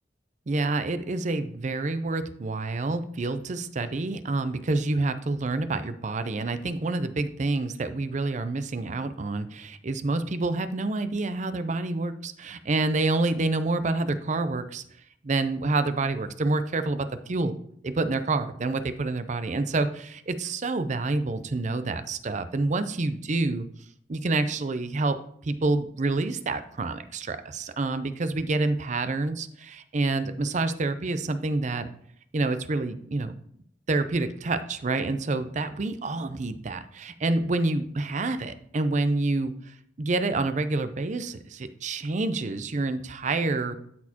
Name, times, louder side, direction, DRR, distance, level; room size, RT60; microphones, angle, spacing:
voice 1, 0.5-14.8 15.2-17.6 17.8-23.7 24.1-25.2 25.4-31.9 32.3-33.3 33.9-43.8, right 2 dB, 45° right, 10 dB, 0.5 m, -28 dB
12.5 x 4.3 x 2.8 m, 0.67 s
head